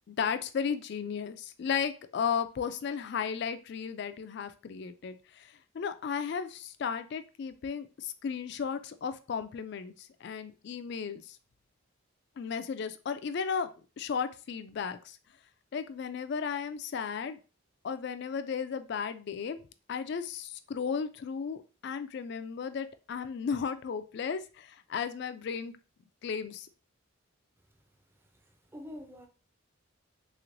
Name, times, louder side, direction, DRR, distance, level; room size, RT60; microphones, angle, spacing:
voice 1, 0.1-11.4 12.4-13.7 14.0-15.2 15.7-17.4 17.8-19.6 19.9-25.7 26.2-26.7, left 6 dB, 55° left, 0.3 m, -35 dB
voice 2, 28.1-29.3, left 1 dB, 10° right, 0.5 m, -47 dB
3.5 x 3.1 x 2.5 m
head